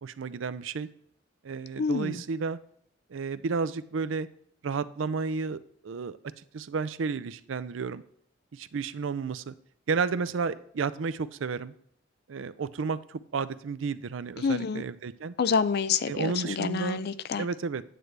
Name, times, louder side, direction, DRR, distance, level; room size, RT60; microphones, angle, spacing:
voice 1, 0.0-0.9 1.4-2.6 3.1-4.3 4.6-6.2 6.5-8.0 8.5-9.5 9.9-11.7 12.3-15.3 16.1-17.0 17.4-17.8, right 5 dB, 75° right, 14 dB, 0.5 m, -32 dB
voice 2, 1.8-2.2 14.4-14.8 15.4-17.5, left 5 dB, 55° left, 15 dB, 0.4 m, -28 dB
9.2 x 7.9 x 3.4 m, 0.65 s
head